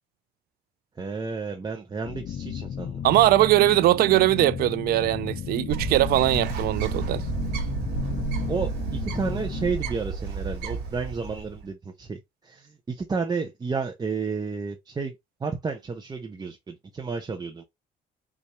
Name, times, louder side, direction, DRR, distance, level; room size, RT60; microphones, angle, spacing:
voice 1, 1.0-3.0 8.5-15.1 15.4-17.6, right 4 dB, 25° right, 0.7 m, -31 dB
sound 1, 2.0-9.7, left 8 dB, 40° left, 0.5 m, -34 dB
voice 2, 3.0-7.2, right 15 dB, 65° right, 0.4 m, -21 dB
Bird, 5.7-11.6, right 5 dB, 85° right, 2.1 m, -31 dB
5.5 x 2.6 x 3.1 m
cardioid pair, 110°, 17 cm